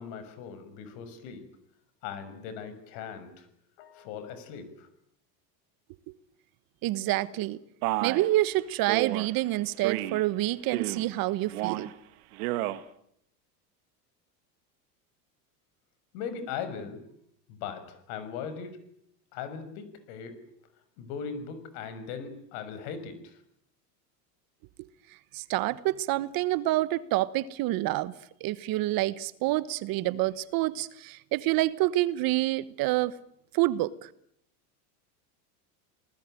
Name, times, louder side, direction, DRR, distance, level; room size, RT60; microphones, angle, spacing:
voice 1, 0.0-1.4 2.0-3.5 3.8-4.9 16.1-17.0 17.5-18.8 19.3-20.4 21.0-23.4, left 6 dB, 65° left, 6.3 m, -39 dB
voice 2, 6.8-7.6 8.0-11.9 25.3-28.1 28.4-33.1 33.5-34.1, right 16 dB, 50° right, 1.3 m, -27 dB
Male speech man speaking, 7.8-8.3 8.9-9.3 9.8-10.2 10.6-11.1 11.5-11.9 12.3-12.8, right 17 dB, 70° right, 1.8 m, -31 dB
28.5 x 19.5 x 9.2 m
supercardioid pair, 120°, 46 cm